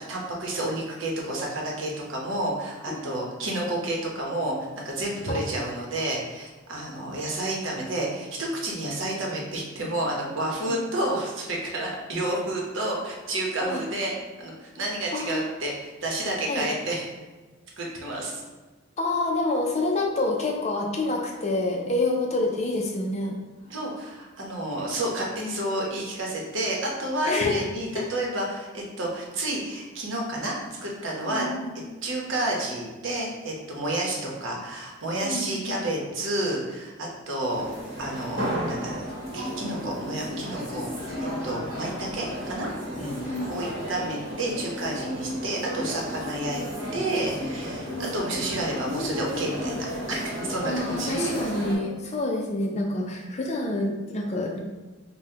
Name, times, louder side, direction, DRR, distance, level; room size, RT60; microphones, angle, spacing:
voice 1, 0.0-14.1 14.4-17.1 17.8-18.4 23.7-30.6 30.8-31.5 32.0-37.6 38.0-39.0 39.3-40.9 41.2-42.7 43.0-46.6 46.9-51.4, right 1 dB, 65° right, -2 dB, 0.9 m, -30 dB
voice 2, 2.9-3.3 5.3-5.6 10.7-10.8 13.6-13.8 15.1-15.5 16.5-16.7 19.0-23.4 27.3-27.6 28.0-28.1 31.2-31.8 35.2-35.7 43.0-43.6 47.9-48.3 50.6-54.6, left 2 dB, 30° left, 0 dB, 0.4 m, -28 dB
sound 1, 37.5-51.7, equal, 50° right, 1.2 m, -33 dB
5.3 x 2.2 x 2.8 m, 1.3 s
head